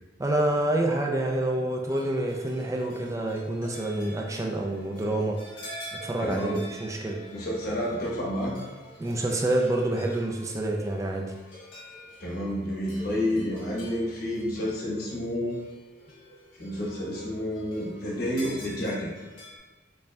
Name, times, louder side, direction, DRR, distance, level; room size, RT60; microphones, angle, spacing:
voice 1, 0.2-5.4 5.9-7.2 9.0-11.3, right 1 dB, 15° right, 1 dB, 0.3 m, -27 dB
sound 1, 1.9-19.6, equal, 90° left, 1.2 m, -47 dB
voice 2, 6.2-6.6 7.3-8.6 12.2-15.6 16.5-19.1, equal, 55° left, -5 dB, 1.1 m, -30 dB
5.2 x 2.6 x 2.2 m, 1.2 s
head